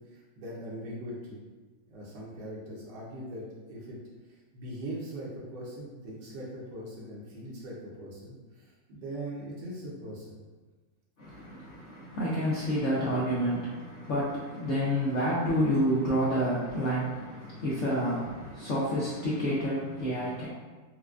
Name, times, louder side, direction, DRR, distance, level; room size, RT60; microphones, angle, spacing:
voice 1, 0.1-1.4 1.9-4.0 4.3-10.4, right 1 dB, 80° right, -6 dB, 1.4 m, -41 dB
voice 2, 11.2-20.5, equal, 75° left, -7 dB, 0.6 m, -29 dB
4.5 x 2.1 x 2.4 m, 1.3 s
omnidirectional pair, 1.9 m